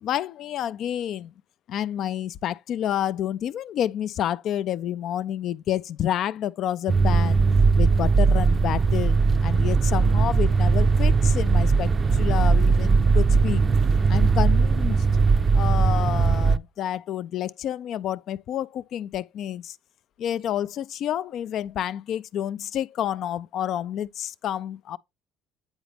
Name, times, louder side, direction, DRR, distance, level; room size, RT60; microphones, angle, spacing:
voice 1, 0.0-1.3 1.7-7.4 7.8-13.6 14.1-15.1 15.5-19.8 20.2-25.0, left 11 dB, 65° left, 0.3 m, -29 dB
sound 1, 6.9-16.6, right 4 dB, 35° right, 0.4 m, -19 dB
8.9 x 4.1 x 3.3 m
supercardioid pair, 75°, 0 cm